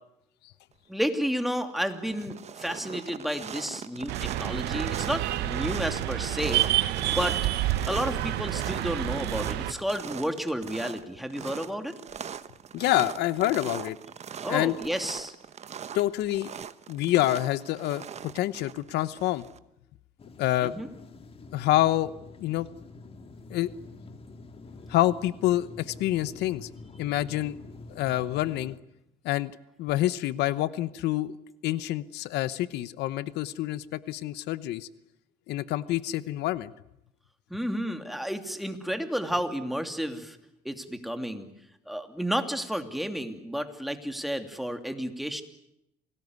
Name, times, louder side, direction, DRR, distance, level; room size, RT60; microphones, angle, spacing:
voice 1, 0.9-7.4 7.9-12.0 14.4-15.3 20.6-20.9 37.5-40.4 40.6-41.5 41.9-45.4, equal, ahead, 6 dB, 2.8 m, -31 dB
sound 1, 1.0-1.4 1.7-19.6, right 8 dB, 40° right, 1.2 m, -41 dB
sound 2, 4.1-9.7, right 14 dB, 90° right, 1.5 m, -29 dB
voice 2, 12.7-14.0 14.5-14.8 15.9-16.5 16.9-18.0 18.3-19.4 20.4-20.7 21.5-22.1 22.4-22.7 23.5-23.7 24.9-26.7 27.0-27.6 27.9-28.7 29.2-29.5 29.8-31.4 31.6-34.9 35.5-36.7, left 15 dB, 85° left, 16 dB, 0.9 m, -27 dB
sound 3, 20.2-28.8, left 3 dB, 35° left, 2.1 m, -47 dB
28.0 x 19.0 x 9.6 m, 0.83 s
cardioid pair, 110°, 17 cm